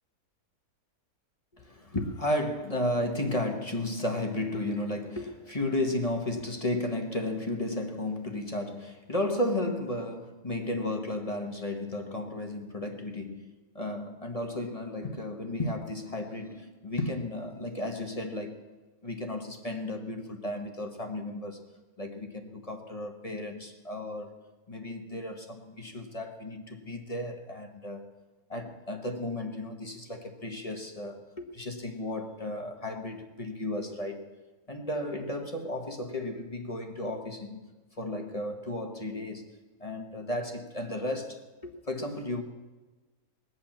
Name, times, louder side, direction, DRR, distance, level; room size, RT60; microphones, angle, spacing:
voice 1, 1.5-18.6 19.0-21.6 22.0-24.3 24.7-28.1 28.5-34.2 34.7-37.6 38.0-39.5 39.8-42.4, left 1 dB, 25° left, 1.3 m, -34 dB
21.0 x 8.6 x 7.3 m
omnidirectional pair, 1.8 m